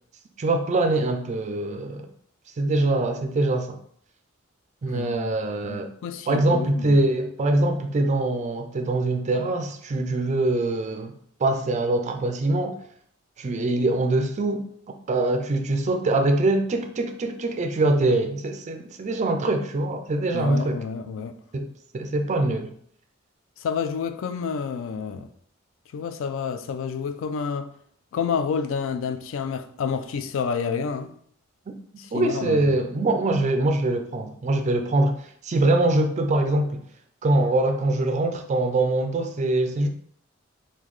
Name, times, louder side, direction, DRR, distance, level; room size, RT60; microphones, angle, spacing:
voice 1, 0.4-2.1 2.6-3.8 4.8-5.9 6.3-11.1 11.4-12.8 13.4-14.6 15.1-20.8 21.5-21.7 21.9-22.7 32.1-36.8 37.2-39.9, right 2 dB, 35° right, 0.3 m, -23 dB
voice 2, 4.9-5.4 5.6-7.0 20.3-21.4 23.6-25.3 25.9-27.7 28.1-31.1 32.0-32.8, left 6 dB, 65° left, 0.3 m, -29 dB
3.7 x 2.2 x 3.1 m
head